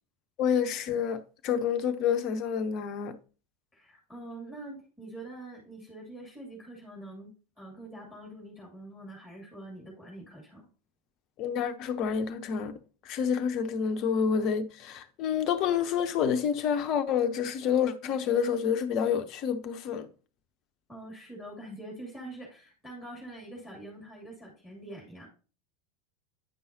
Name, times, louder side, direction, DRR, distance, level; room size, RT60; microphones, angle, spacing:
voice 1, 0.4-3.2 11.4-12.7 13.0-20.1, left 7 dB, 45° left, 0.7 m, -28 dB
voice 2, 3.7-7.3 7.6-10.7 20.9-25.3, right 1 dB, ahead, 2.5 m, -45 dB
9.4 x 5.5 x 2.7 m
figure-of-eight pair, 80°, 0 cm